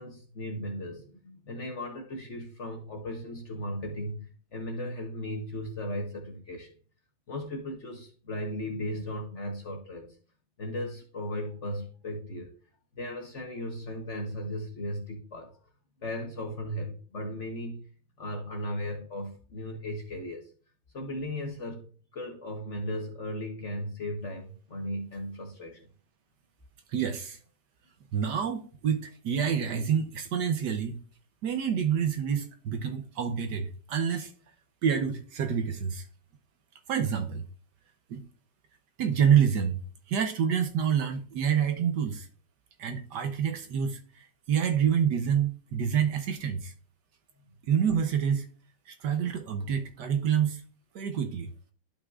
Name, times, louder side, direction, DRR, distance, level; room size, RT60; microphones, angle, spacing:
voice 1, 0.0-6.8 7.3-10.2 10.6-12.5 12.9-15.6 16.0-17.9 18.2-20.5 20.9-25.9, left 1 dB, 45° left, 1.1 m, -36 dB
voice 2, 26.9-27.4 28.1-31.0 31.4-34.3 34.8-36.1 36.9-37.4 38.1-38.2 39.0-39.8 40.1-42.3 42.8-46.7 47.7-48.5 48.9-50.6 50.9-51.5, right 8 dB, 65° right, 1.2 m, -27 dB
12.0 x 5.5 x 2.4 m
omnidirectional pair, 2.2 m